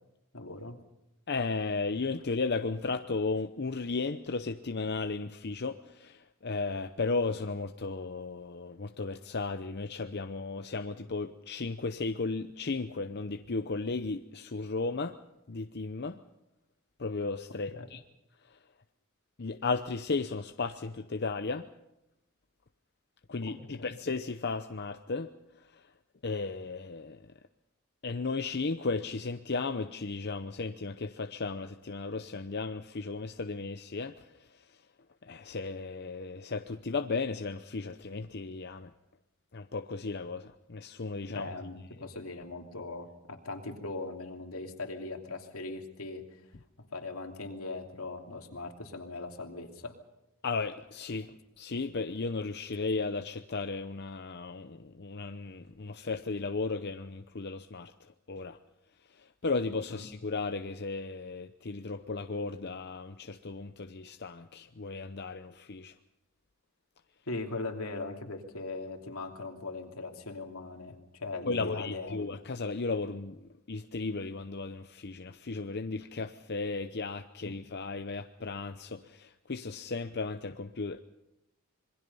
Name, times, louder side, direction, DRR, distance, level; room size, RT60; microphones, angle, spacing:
voice 1, 0.3-0.8 17.7-17.9 23.4-24.0 41.3-46.2 46.9-50.0 59.9-60.1 67.3-72.3 77.4-77.5, left 3 dB, 80° left, 3 dB, 2.9 m, -40 dB
voice 2, 1.3-15.2 15.5-16.2 17.0-18.0 18.5-18.6 19.4-21.7 23.3-25.3 25.7-25.8 26.2-27.2 28.0-34.5 35.2-38.9 39.5-41.5 42.0-42.1 50.4-58.6 59.1-65.9 71.5-81.0, left 3 dB, 50° left, 7 dB, 0.8 m, -35 dB
26.5 x 22.0 x 5.5 m, 0.90 s
head